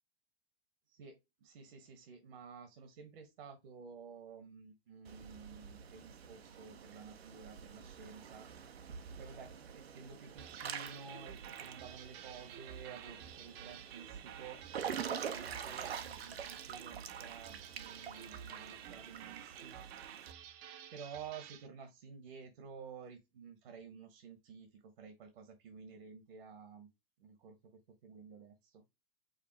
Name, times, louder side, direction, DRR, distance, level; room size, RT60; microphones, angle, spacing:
voice 1, 0.9-14.6 15.0-20.7 20.9-26.9 27.2-28.8, right 6 dB, 70° right, 1.2 m, -52 dB
Water / Splash splatter / Drip, 5.0-20.3, right 7 dB, 85° right, 0.7 m, -46 dB
sound 1, 10.4-21.7, right 10 dB, 45° right, 0.7 m, -51 dB
5.1 x 2.5 x 3.3 m
hypercardioid pair, 100°, 30 cm